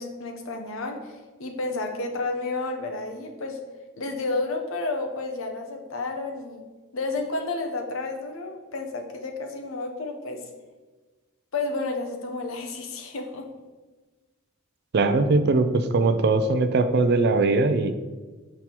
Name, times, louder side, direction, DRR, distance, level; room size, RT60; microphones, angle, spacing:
voice 1, 0.0-3.6 4.0-6.6 6.9-10.4 11.5-13.5, left 3 dB, 70° left, 4 dB, 0.8 m, -31 dB
voice 2, 14.9-17.9, right 3 dB, 55° right, 10 dB, 0.4 m, -21 dB
6.1 x 5.4 x 2.9 m, 1.3 s
head